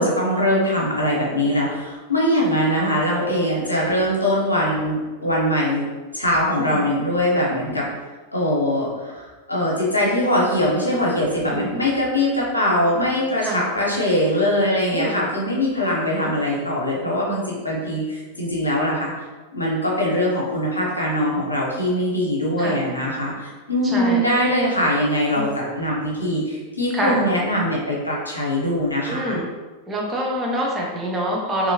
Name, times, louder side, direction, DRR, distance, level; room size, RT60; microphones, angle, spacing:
voice 1, 0.0-5.9 6.1-7.9 8.3-19.1 19.5-29.4, left 1 dB, 80° left, -4 dB, 1.0 m, -22 dB
voice 2, 23.8-24.4 25.3-25.4 26.9-27.2 29.1-29.4 29.9-31.7, right 1 dB, 15° right, -3 dB, 0.9 m, -26 dB
3.6 x 2.9 x 2.8 m, 1.3 s
figure-of-eight pair, 90°, 0 cm